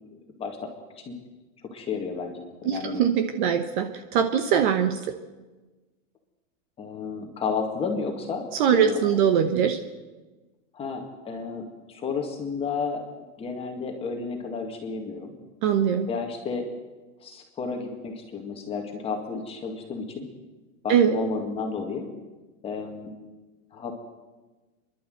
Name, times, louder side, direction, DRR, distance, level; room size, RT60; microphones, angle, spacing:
voice 1, 0.4-0.7 1.0-1.1 1.7-3.0 6.8-9.2 10.7-13.0 13.4-15.3 16.1-16.7 17.2-20.3 20.8-22.1 22.6-23.1 23.7-23.9, left 4 dB, 15° left, 3 dB, 2.0 m, -32 dB
voice 2, 2.6-5.1 8.6-9.8 15.6-16.1 20.9-21.1, right 8 dB, 35° right, 8 dB, 1.0 m, -22 dB
29.5 x 11.5 x 7.9 m, 1.2 s
supercardioid pair, 175°, 42 cm